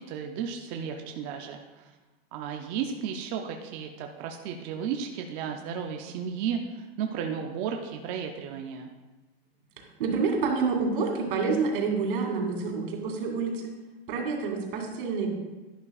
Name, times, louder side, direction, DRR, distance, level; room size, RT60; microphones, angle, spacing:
voice 1, 0.1-1.9 2.3-8.9, right 7 dB, 25° right, 3 dB, 0.4 m, -34 dB
voice 2, 9.8-13.7 14.1-15.3, right 4 dB, 65° right, 1 dB, 2.4 m, -28 dB
11.5 x 11.0 x 2.3 m, 1.2 s
supercardioid pair, 160°, 29 cm